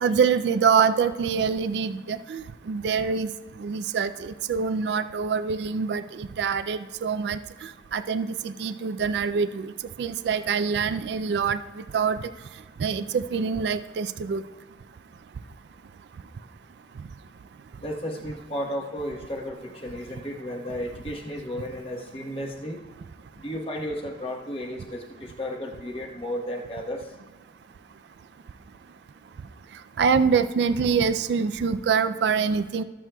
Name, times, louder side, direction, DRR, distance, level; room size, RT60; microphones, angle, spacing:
voice 1, 0.0-3.3 3.6-7.4 7.9-9.7 10.0-11.6 11.9-12.2 12.8-14.4 30.0-32.8, right 6 dB, 80° right, 12 dB, 0.3 m, -25 dB
voice 2, 17.8-22.8 23.4-27.1, equal, 30° left, 0 dB, 1.1 m, -33 dB
21.0 x 7.4 x 2.3 m, 1.3 s
head